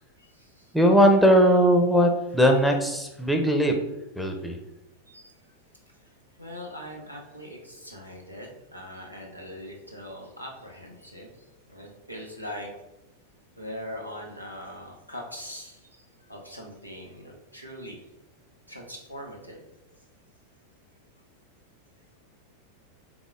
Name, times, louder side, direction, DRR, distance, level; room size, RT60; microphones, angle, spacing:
voice 1, 0.2-0.7 5.1-5.3 6.0-12.7 13.6-18.0 18.7-19.6, equal, 90° right, -1 dB, 0.9 m, -41 dB
voice 2, 0.7-3.7 4.2-4.6, equal, ahead, 3 dB, 0.7 m, -19 dB
4.0 x 3.6 x 3.6 m, 0.94 s
figure-of-eight pair, 90°, 0 cm